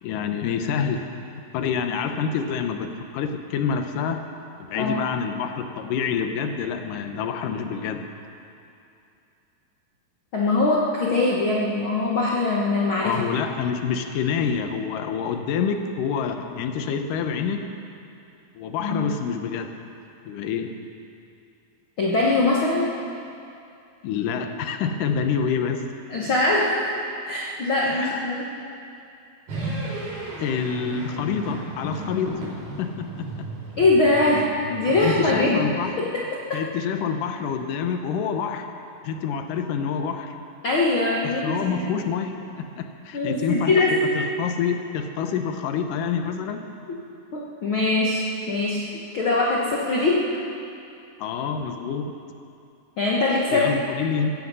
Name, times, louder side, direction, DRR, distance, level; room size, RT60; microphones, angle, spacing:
voice 1, 0.0-1.1 1.5-4.2 4.7-8.0 13.0-17.7 18.6-19.8 20.3-20.7 24.0-25.8 27.8-28.4 30.4-32.4 32.8-33.5 35.0-36.0 36.5-38.7 39.0-40.3 41.2-46.6 51.2-52.1 53.5-54.3, left 6 dB, 70° left, 6 dB, 2.4 m, -27 dB
voice 2, 10.3-13.2 18.8-19.1 22.0-22.9 26.1-26.9 27.3-28.4 33.8-35.6 36.0-36.1 36.5-36.6 40.6-41.8 43.1-44.1 47.3-48.9 49.1-50.3 53.0-53.7, left 2 dB, 55° left, -3 dB, 1.5 m, -22 dB
sound 1, 29.5-35.9, right 1 dB, 75° right, 6.4 m, -35 dB
16.0 x 15.5 x 5.5 m, 2.6 s
omnidirectional pair, 4.1 m